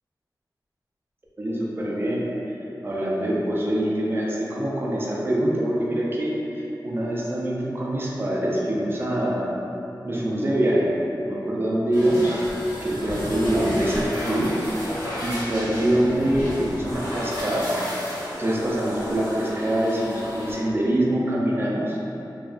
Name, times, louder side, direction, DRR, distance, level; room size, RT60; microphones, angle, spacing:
voice 1, 1.4-2.2 2.8-9.5 10.0-10.9 11.2-12.4 12.8-14.5 15.2-17.7 18.4-22.0, right 1 dB, 30° right, -5 dB, 0.4 m, -24 dB
sound 1, 11.9-20.5, equal, 70° left, 1.3 m, -33 dB
2.7 x 2.4 x 2.4 m, 2.9 s
wide cardioid pair, 100°, 8 cm